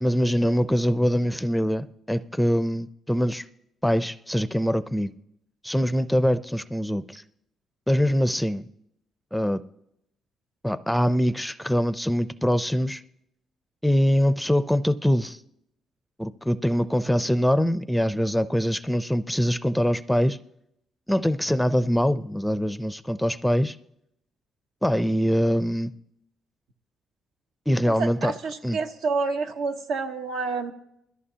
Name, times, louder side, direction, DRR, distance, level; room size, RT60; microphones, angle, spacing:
voice 1, 0.0-3.4 3.8-5.1 5.6-7.2 7.9-8.7 9.3-9.6 10.6-13.0 13.8-15.4 16.2-20.4 21.1-23.8 24.8-25.9 27.7-28.3 28.6-28.8, equal, ahead, 0.4 m, -23 dB
voice 2, 27.8-30.7, right 4 dB, 85° right, 1.0 m, -28 dB
21.0 x 13.5 x 2.8 m
cardioid pair, 90°, 0 cm